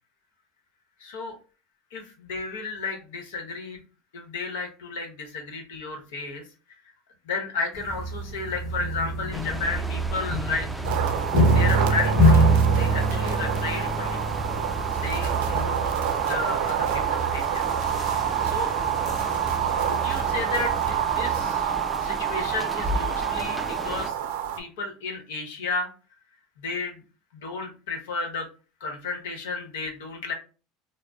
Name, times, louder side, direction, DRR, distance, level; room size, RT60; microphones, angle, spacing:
voice 1, 1.0-1.4 1.9-3.8 4.1-6.4 7.2-10.7 11.5-14.2 14.9-16.0 16.3-17.6 17.9-18.7 19.8-21.7 22.0-24.2 24.6-25.9 26.6-27.0 27.3-28.5 28.8-30.3, left 4 dB, 90° left, 3 dB, 0.9 m, -33 dB
sound 1, 7.7-21.4, right 1 dB, 35° left, 1.1 m, -26 dB
sound 2, 9.3-24.1, right 1 dB, 5° right, 0.4 m, -35 dB
sound 3, 10.8-24.6, right 10 dB, 80° right, 0.4 m, -28 dB
3.8 x 2.0 x 2.3 m, 0.34 s
supercardioid pair, 120°, 0 cm